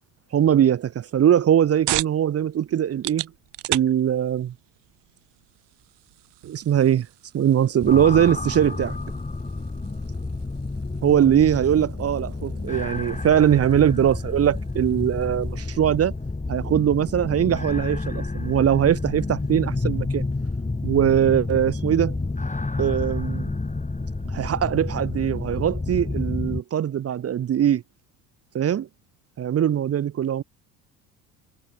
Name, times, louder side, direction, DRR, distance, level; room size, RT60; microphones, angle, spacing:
voice 1, 0.3-3.3 3.7-4.5 6.4-7.1 7.3-9.0 11.0-16.1 16.5-20.2 20.8-22.2 22.8-23.5 24.3-27.8 28.5-28.9 29.4-30.4, right 10 dB, 30° right, 0.8 m, -21 dB
sound 1, 1.2-16.4, right 16 dB, 60° right, 4.2 m, -38 dB
sound 2, 7.8-26.6, left 3 dB, 15° left, 7.5 m, -29 dB
hypercardioid pair, 65°, 47 cm